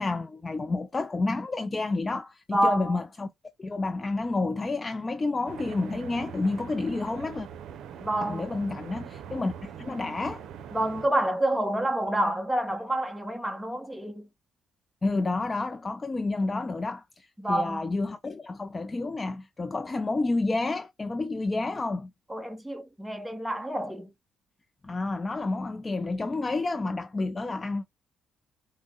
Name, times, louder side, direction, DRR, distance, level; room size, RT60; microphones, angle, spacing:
voice 1, 0.0-3.3 3.6-7.5 8.2-10.4 15.0-22.1 24.8-27.8, left 3 dB, 25° left, 0.4 m, -30 dB
voice 2, 2.5-3.0 8.0-8.5 10.7-14.3 17.4-17.9 22.3-24.1, right 1 dB, 5° right, 0.8 m, -28 dB
sound 1, 5.5-11.1, right 8 dB, 75° right, 0.6 m, -42 dB
6.0 x 2.1 x 3.6 m
cardioid pair, 90°, 0 cm